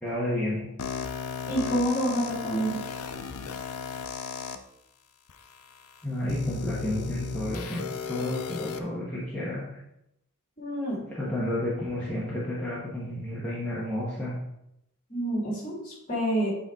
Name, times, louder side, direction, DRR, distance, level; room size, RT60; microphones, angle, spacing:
voice 1, 0.0-0.7 6.0-9.8 11.1-14.3, left 1 dB, 5° left, -8 dB, 1.3 m, -31 dB
sound 1, 0.8-4.6 5.3-5.4 6.3-8.8, left 5 dB, 85° left, 0.6 m, -35 dB
voice 2, 1.5-2.8 10.6-11.1 15.1-16.5, right 1 dB, 35° left, -4 dB, 2.8 m, -28 dB
8.3 x 4.4 x 3.7 m, 0.82 s
head